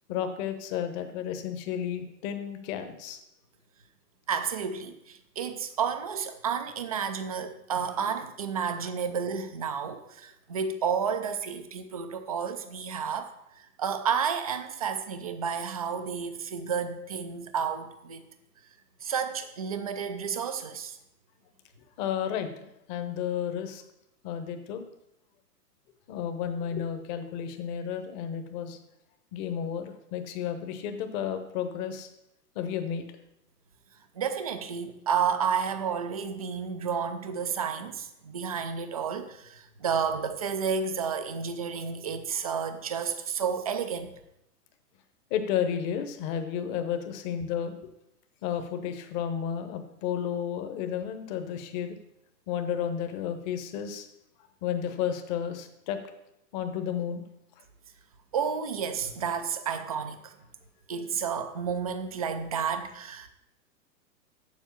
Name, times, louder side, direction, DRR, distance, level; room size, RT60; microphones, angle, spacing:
voice 1, 0.1-3.2 22.0-22.5 22.9-23.8 24.2-24.8 26.1-28.8 29.3-32.1 32.5-33.0 45.3-47.7 48.4-52.0 52.5-54.1 54.6-56.0 56.5-57.2, left 8 dB, 30° left, 8 dB, 0.9 m, -32 dB
voice 2, 4.3-18.2 19.0-21.0 34.2-44.1 58.3-60.3 60.9-63.3, right 6 dB, 25° right, 9 dB, 0.3 m, -31 dB
7.3 x 6.3 x 7.1 m, 0.83 s
hypercardioid pair, 140°, 48 cm